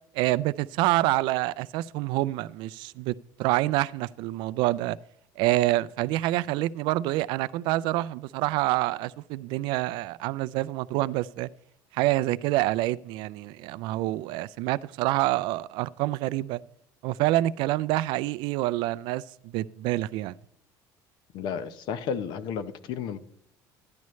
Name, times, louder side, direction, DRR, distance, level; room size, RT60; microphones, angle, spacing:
voice 1, 0.1-5.0 5.4-11.5 11.9-16.6 17.0-20.3, right 17 dB, 75° right, 0.4 m, -27 dB
voice 2, 21.3-23.2, left 7 dB, 65° left, 0.8 m, -32 dB
13.5 x 10.5 x 3.2 m
cardioid pair, 135°, 8 cm